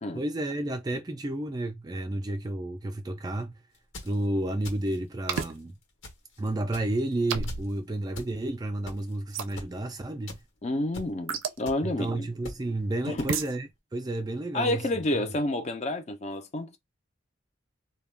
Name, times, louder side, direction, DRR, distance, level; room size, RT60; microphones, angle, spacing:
voice 1, 0.1-3.6 4.0-5.7 6.4-10.4 11.8-14.9 15.1-15.3, right 1 dB, 20° right, 0.3 m, -31 dB
sound 1, 3.7-4.1 4.6-5.0 5.3-5.6 6.0-6.4 6.7-7.0 7.5-7.6 8.1-8.3 8.8-9.1 9.6-9.7 10.3-10.4 10.9-11.1 11.6-11.8 12.4-12.6 13.2-13.3, left 1 dB, 75° left, 1.2 m, -41 dB
sound 2, 5.3-5.5 7.3-7.7 9.3-9.5 11.3-11.6 13.3-13.5, right 6 dB, 90° right, 0.4 m, -30 dB
voice 2, 10.6-12.3 13.1-13.3 14.5-16.8, left 1 dB, 35° left, 0.5 m, -29 dB
2.3 x 2.2 x 3.3 m
head